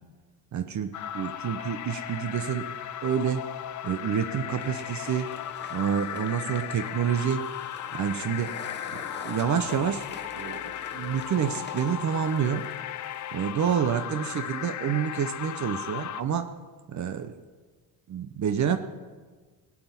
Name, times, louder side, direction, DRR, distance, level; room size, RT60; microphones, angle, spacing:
voice 1, 0.5-2.7 3.0-3.5 3.8-5.3 5.7-7.4 7.9-8.6 8.9-10.1 10.3-12.7 13.3-16.5 16.9-17.3 18.1-18.8, right 8 dB, 50° right, 9 dB, 0.8 m, -28 dB
sound 1, 0.9-16.2, left 11 dB, 50° left, 0.6 m, -36 dB
sound 2, 4.6-13.5, left 5 dB, 30° left, 1.1 m, -46 dB
17.0 x 6.0 x 9.4 m, 1.4 s
cardioid pair, 115°, 37 cm